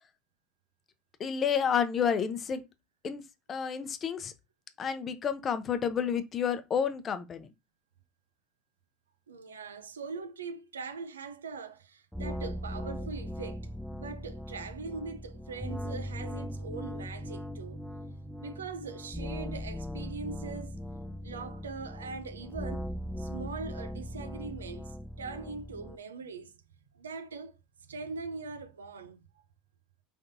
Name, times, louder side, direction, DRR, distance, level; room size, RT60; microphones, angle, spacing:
voice 1, 1.2-2.6 3.0-3.2 3.5-4.3 4.8-7.5, left 7 dB, 35° left, 0.7 m, -30 dB
voice 2, 9.3-17.8 18.4-20.8 21.2-22.9 23.2-26.6 26.9-27.6 27.8-29.2, right 4 dB, 90° right, 0.5 m, -41 dB
sound 1, 12.1-26.0, equal, 5° left, 0.3 m, -39 dB
3.9 x 3.5 x 2.6 m
hypercardioid pair, 75°, 0 cm